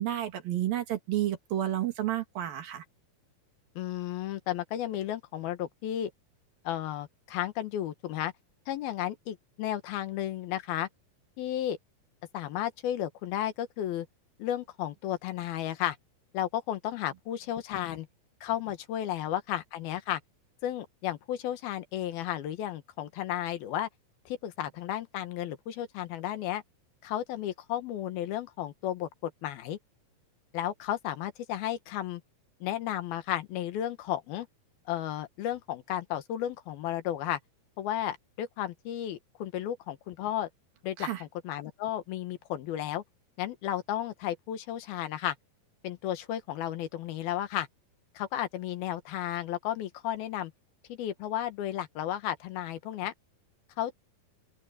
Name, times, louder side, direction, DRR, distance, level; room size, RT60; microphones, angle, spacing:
voice 1, 0.0-2.8 41.0-41.2, right 12 dB, 70° right, 3.8 m, -31 dB
voice 2, 3.8-6.1 6.6-8.3 8.7-10.9 11.4-11.8 12.3-14.1 14.4-16.0 16.3-18.1 18.4-20.2 20.6-23.9 24.3-26.6 27.0-29.8 30.5-32.2 32.6-34.5 34.9-37.4 37.8-40.5 40.8-43.0 43.4-45.3 45.8-47.7 48.1-50.5 50.9-53.1 53.8-54.0, left 12 dB, 80° left, 3.2 m, -33 dB
open air
omnidirectional pair, 4.4 m